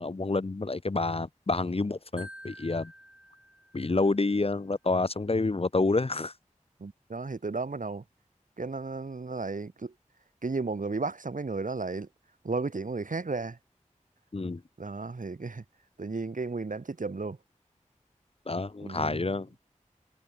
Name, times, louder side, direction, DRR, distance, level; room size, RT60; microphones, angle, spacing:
voice 1, 0.0-2.9 3.7-6.3 14.3-14.6 18.5-19.5, left 3 dB, 45° left, 0.9 m, -28 dB
Marimba xylophone, 2.2-4.2, equal, 10° right, 7.2 m, -49 dB
voice 2, 6.8-8.0 8.6-9.9 10.4-12.1 12.4-13.6 14.8-15.6 16.0-17.4 18.8-19.4, right 3 dB, 80° right, 2.5 m, -34 dB
wide cardioid pair, 45°, 13 cm